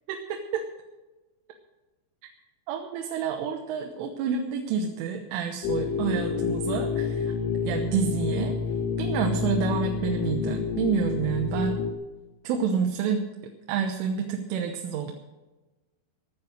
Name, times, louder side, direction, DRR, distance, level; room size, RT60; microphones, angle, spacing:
voice 1, 0.1-0.6 2.7-7.3 7.6-8.6 9.0-11.8 12.5-13.2 13.7-15.1, right 7 dB, 90° right, 4 dB, 3.5 m, -28 dB
sound 1, 5.6-11.9, left 6 dB, 90° left, 3.5 m, -28 dB
16.5 x 10.5 x 6.4 m, 1.2 s
omnidirectional pair, 5.5 m